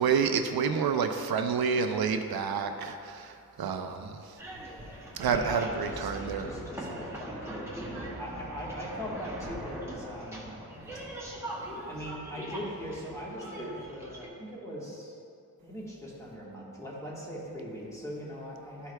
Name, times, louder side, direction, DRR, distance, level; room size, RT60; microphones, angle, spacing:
voice 1, 0.0-4.4 5.1-6.5, right 6 dB, 90° right, 6 dB, 0.5 m, -29 dB
sound 1, 4.4-14.3, right 1 dB, 5° right, 0.9 m, -41 dB
voice 2, 5.3-6.1 6.4-10.6 11.9-15.1 15.6-18.9, equal, 10° left, -6 dB, 1.3 m, -40 dB
12.5 x 4.6 x 2.2 m, 2.4 s
wide cardioid pair, 160°, 36 cm